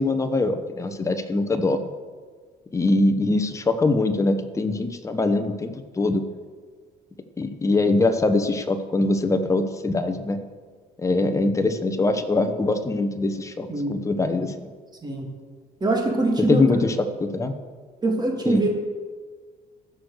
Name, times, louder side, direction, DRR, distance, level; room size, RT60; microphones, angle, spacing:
voice 1, 0.0-1.9 2.7-6.2 7.4-10.4 11.0-14.7 16.4-17.5 18.5-18.6, left 2 dB, 20° left, 7 dB, 1.0 m, -23 dB
voice 2, 15.8-16.7 18.0-18.7, right 2 dB, 25° right, 1 dB, 2.3 m, -23 dB
14.5 x 6.3 x 6.6 m, 1.5 s
cardioid pair, 110°, 17 cm